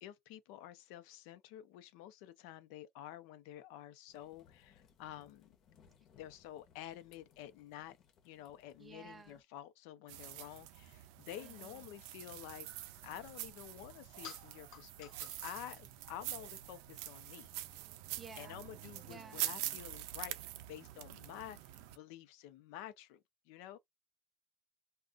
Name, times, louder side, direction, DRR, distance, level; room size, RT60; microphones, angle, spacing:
voice 1, 0.0-5.6 6.1-8.0 8.2-12.7 13.0-17.5 18.4-20.4 20.7-23.8, left 12 dB, 80° left, 0.6 m, -50 dB
sound 1, 4.1-9.4, left 7 dB, 40° left, 0.8 m, -67 dB
voice 2, 8.8-9.4 11.4-11.8 18.2-18.6 19.1-19.4, right 4 dB, 15° right, 0.4 m, -53 dB
sound 2, 10.1-22.0, right 14 dB, 85° right, 0.4 m, -45 dB
sound 3, 12.7-18.2, left 7 dB, 65° left, 1.2 m, -59 dB
2.5 x 2.3 x 3.7 m
cardioid pair, 175°, 0 cm